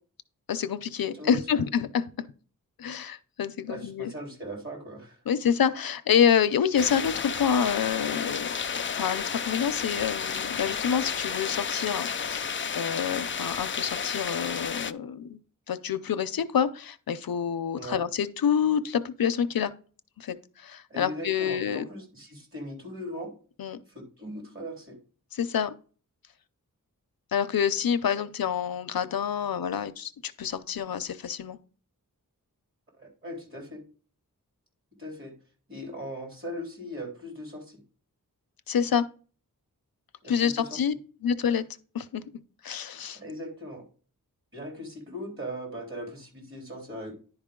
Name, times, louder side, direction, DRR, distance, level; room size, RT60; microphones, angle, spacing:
voice 1, 0.5-2.0 2.8-4.1 5.3-8.5 8.9-15.4 15.7-19.7 20.2-21.9 23.6-23.8 25.3-25.7 27.3-31.6 38.7-39.0 40.3-40.9 41.2-41.6 41.9-42.2 42.6-43.2, left 8 dB, 85° left, 0.6 m, -27 dB
voice 2, 1.1-1.6 3.7-5.2 17.7-18.0 20.9-23.3 23.9-25.0 33.0-33.8 35.0-35.3 35.7-37.8 40.2-40.8 43.1-43.9 44.5-47.1, equal, 35° right, 3.6 m, -39 dB
sound 1, 6.8-14.9, left 6 dB, 35° left, 0.4 m, -32 dB
10.5 x 4.8 x 3.7 m
wide cardioid pair, 85°, 35 cm